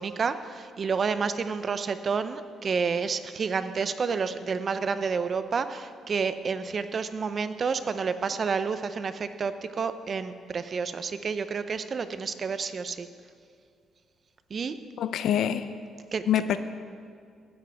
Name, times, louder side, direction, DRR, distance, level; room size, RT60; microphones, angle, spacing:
voice 1, 0.0-13.1 14.5-14.8 16.1-16.2, right 5 dB, 40° right, 11 dB, 0.5 m, -29 dB
voice 2, 15.0-15.7 16.3-16.6, left 10 dB, 75° left, 12 dB, 0.5 m, -25 dB
16.0 x 10.0 x 3.5 m, 2.3 s
cardioid pair, 130°, 0 cm